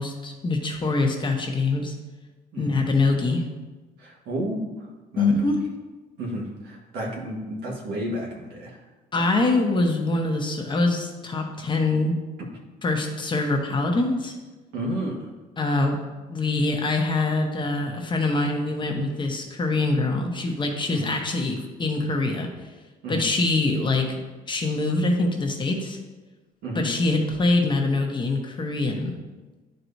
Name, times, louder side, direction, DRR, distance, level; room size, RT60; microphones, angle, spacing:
voice 1, 0.0-1.9 2.6-3.5 5.2-5.6 9.1-12.2 12.8-14.3 15.6-16.0 16.3-22.5 23.1-24.2 24.5-26.0 26.7-29.2, left 2 dB, 30° left, 2 dB, 1.0 m, -24 dB
voice 2, 4.0-5.5 6.2-8.8 9.2-9.4 14.7-15.3 20.9-21.1 23.0-23.3 26.6-26.9, right 1 dB, 75° right, 0 dB, 1.6 m, -32 dB
10.5 x 4.5 x 2.7 m, 1.2 s
cardioid pair, 110°, 17 cm